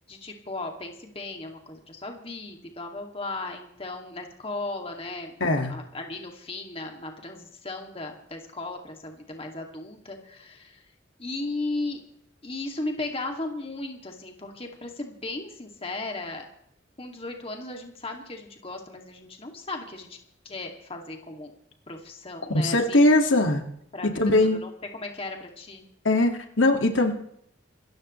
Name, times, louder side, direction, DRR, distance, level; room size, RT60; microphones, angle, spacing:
voice 1, 0.1-10.8 11.2-12.0 12.4-16.5 17.0-20.2 20.4-21.5 21.9-23.2 23.9-24.1 24.5-25.8, left 2 dB, 30° left, 3 dB, 2.4 m, -36 dB
voice 2, 5.4-5.7 22.5-23.6 24.0-24.6 26.0-27.1, left 2 dB, 80° left, 4 dB, 2.1 m, -21 dB
27.0 x 14.5 x 3.2 m, 0.70 s
head